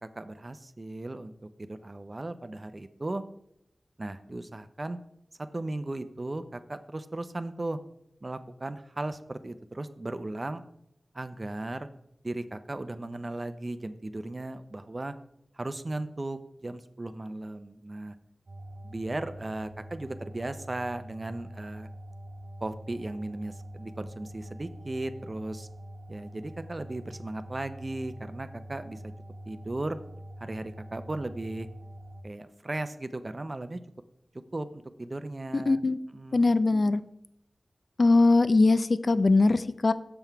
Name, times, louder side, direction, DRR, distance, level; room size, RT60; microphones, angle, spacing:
voice 1, 0.0-3.2 4.0-5.0 5.5-7.8 8.2-10.6 11.1-11.9 12.2-15.1 15.5-18.2 18.8-21.9 22.6-25.7 26.1-29.1 29.5-30.0 30.4-31.7 32.2-33.8 34.5-35.8 36.1-36.4, right 2 dB, 40° right, 11 dB, 0.5 m, -36 dB
sound 1, 18.5-32.2, equal, 70° right, 0.7 m, -45 dB
voice 2, 35.5-36.0 36.3-37.0 38.0-39.9, left 3 dB, 60° left, 14 dB, 0.4 m, -21 dB
6.9 x 5.6 x 4.5 m, 0.77 s
cardioid pair, 45°, 0 cm